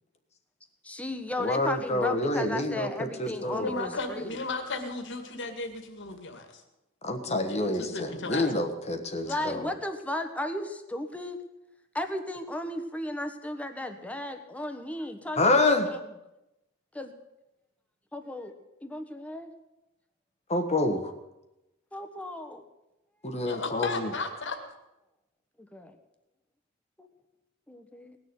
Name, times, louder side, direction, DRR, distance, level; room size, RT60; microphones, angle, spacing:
voice 1, 0.8-4.3 9.2-11.4 11.9-16.0 16.9-17.1 18.1-18.5 18.8-19.5 21.9-22.6 23.2-23.4 25.6-25.9 27.0-27.1 27.7-28.2, left 1 dB, 5° left, 6 dB, 1.3 m, -35 dB
voice 2, 1.4-3.7 7.0-9.7 15.4-15.9 20.5-21.1 23.2-24.1, left 2 dB, 30° left, 6 dB, 1.3 m, -27 dB
voice 3, 3.5-6.6 7.3-8.5 9.3-9.4 23.4-24.6, left 3 dB, 60° left, 6 dB, 2.1 m, -35 dB
19.0 x 6.9 x 9.5 m, 0.95 s
head